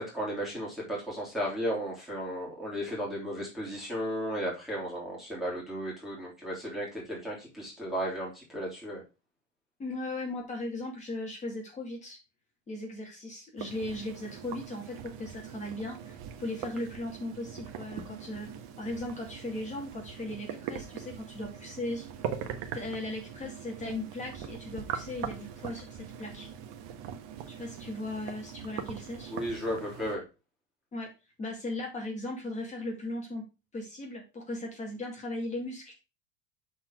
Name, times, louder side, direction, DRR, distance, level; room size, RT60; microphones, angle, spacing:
voice 1, 0.0-9.0 29.3-30.2, equal, ahead, -6 dB, 3.3 m, -34 dB
voice 2, 9.8-12.2 12.7-18.5 18.8-22.0 22.7-26.5 27.6-29.3 30.9-31.1 31.4-33.4 33.7-35.9, left 1 dB, 20° left, 0 dB, 2.2 m, -37 dB
sound 1, 13.6-30.2, right 8 dB, 50° right, 1.2 m, -41 dB
7.6 x 4.4 x 4.7 m, 0.29 s
supercardioid pair, 140°, 38 cm